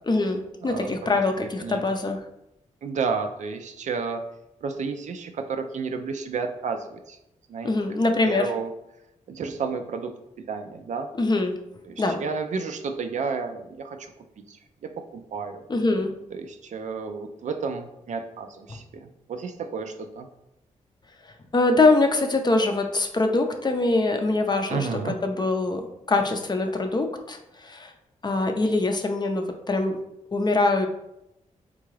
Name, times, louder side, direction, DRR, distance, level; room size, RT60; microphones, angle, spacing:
voice 1, 0.1-2.2 7.6-8.5 11.2-11.6 12.0-12.2 15.7-16.1 18.7-18.8 21.5-25.8 26.1-27.9 28.2-30.0 30.3-30.9, left 2 dB, 35° left, 5 dB, 0.5 m, -23 dB
voice 2, 2.8-4.2 4.6-7.2 7.5-7.7 8.1-8.7 9.3-10.1 10.5-11.1 11.8-14.1 14.5-15.6 16.3-20.3 24.7-25.2, right 5 dB, 65° right, 6 dB, 0.4 m, -31 dB
3.7 x 2.3 x 3.1 m, 0.85 s
cardioid pair, 60°, 13 cm